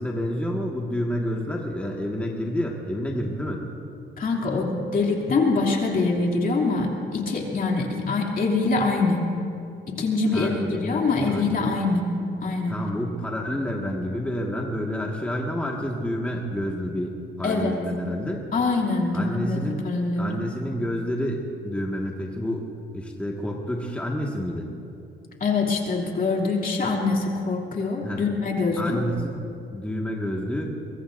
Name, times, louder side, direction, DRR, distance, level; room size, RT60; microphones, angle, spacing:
voice 1, 0.0-3.6 10.3-11.0 11.3-11.6 12.7-18.4 19.1-19.8 20.2-22.7 22.9-24.7 28.0-28.2 28.8-29.4 29.7-30.8, equal, 5° left, -2 dB, 1.8 m, -29 dB
voice 2, 4.2-9.3 9.9-12.1 12.4-12.8 17.4-17.7 18.5-20.4 25.4-29.0, left 3 dB, 45° left, -1 dB, 2.9 m, -24 dB
23.0 x 23.0 x 2.6 m, 2.7 s
cardioid pair, 90°, 20 cm